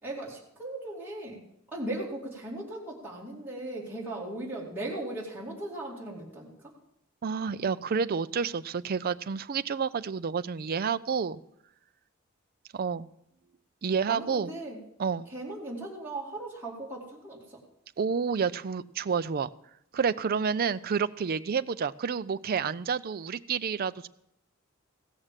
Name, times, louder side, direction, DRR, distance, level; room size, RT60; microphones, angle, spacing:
voice 1, 0.0-1.4 1.7-6.5 14.1-14.8 15.3-17.6, right 1 dB, 10° right, -5 dB, 2.5 m, -38 dB
voice 2, 7.2-11.4 12.7-13.1 13.8-14.5 15.0-15.3 18.0-19.5 19.9-24.1, right 6 dB, 45° right, 13 dB, 0.4 m, -29 dB
16.0 x 6.6 x 7.3 m, 0.78 s
head